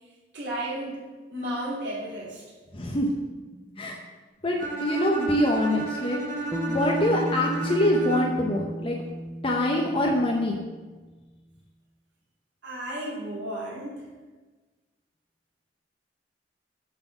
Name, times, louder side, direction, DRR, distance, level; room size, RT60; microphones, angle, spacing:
voice 1, 0.3-2.4 12.6-14.1, right 1 dB, 80° right, -6 dB, 2.9 m, -33 dB
voice 2, 2.7-3.1 3.8-4.0 4.4-9.0 9.4-10.6, left 1 dB, 30° left, -1 dB, 0.7 m, -25 dB
Bowed string instrument, 4.6-8.6, right 3 dB, 45° right, 1.1 m, -33 dB
Bass guitar, 6.5-10.9, equal, 5° right, 0.4 m, -34 dB
8.1 x 4.0 x 7.0 m, 1.3 s
head